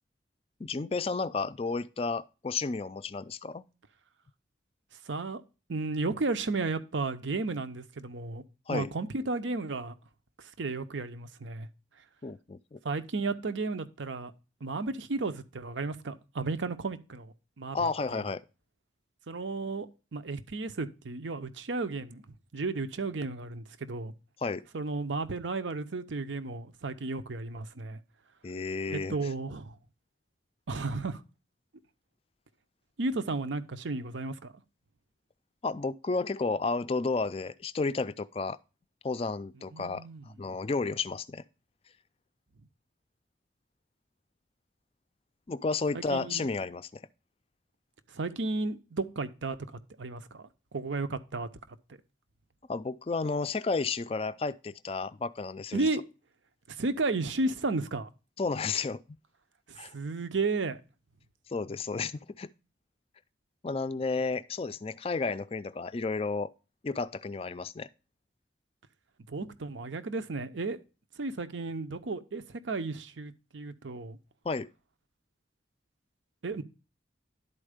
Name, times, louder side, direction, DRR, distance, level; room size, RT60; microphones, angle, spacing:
voice 1, 0.6-3.6 8.7-8.9 12.2-12.8 17.7-18.4 24.4-24.7 28.4-29.2 35.6-38.6 39.0-40.0 40.4-41.4 45.5-47.0 52.7-55.9 58.4-59.0 59.8-59.9 61.5-62.5 63.6-66.5 66.8-67.9 74.4-74.7, left 4 dB, 30° left, 0.4 m, -32 dB
voice 2, 5.1-5.4 5.7-8.4 8.7-9.9 10.4-11.7 12.8-14.3 14.6-17.8 19.3-22.2 22.5-24.1 24.7-28.0 28.9-29.8 30.7-31.2 33.0-34.5 39.7-40.3 45.9-46.5 48.1-49.6 50.0-51.8 55.7-56.0 56.7-58.1 59.7-60.8 69.3-70.8 71.2-74.2 76.4-76.6, right 3 dB, 85° right, 0.7 m, -33 dB
11.0 x 4.5 x 4.9 m
head